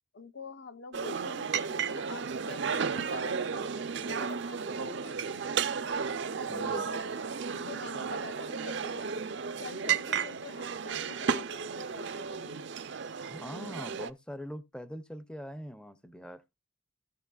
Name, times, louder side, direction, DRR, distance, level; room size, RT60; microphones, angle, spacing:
voice 1, 0.1-5.6 6.4-7.2 7.5-12.7, left 3 dB, 60° left, 0.7 m, -46 dB
sound 1, 0.9-14.1, right 6 dB, 60° right, 0.5 m, -33 dB
voice 2, 6.5-6.9 13.2-16.4, equal, 5° left, 0.5 m, -43 dB
17.0 x 6.1 x 2.3 m
head